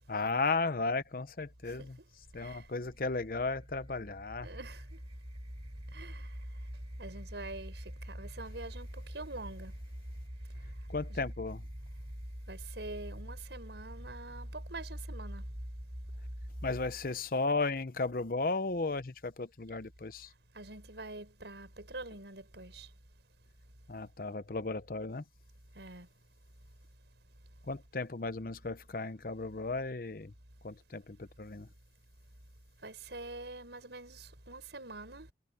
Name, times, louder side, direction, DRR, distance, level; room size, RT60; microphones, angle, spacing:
voice 1, 0.1-1.9 2.3-4.5 10.9-11.6 16.6-20.3 23.9-25.2 27.7-30.3 30.6-31.7, left 3 dB, 55° left, 0.8 m, -35 dB
voice 2, 1.6-2.7 4.4-5.0 5.9-9.8 10.4-11.3 12.5-15.5 20.3-23.0 23.6-23.7 25.7-26.3 32.8-35.3, right 2 dB, 80° right, 6.0 m, -46 dB
sound 1, 2.2-17.1, equal, 35° right, 1.9 m, -45 dB
head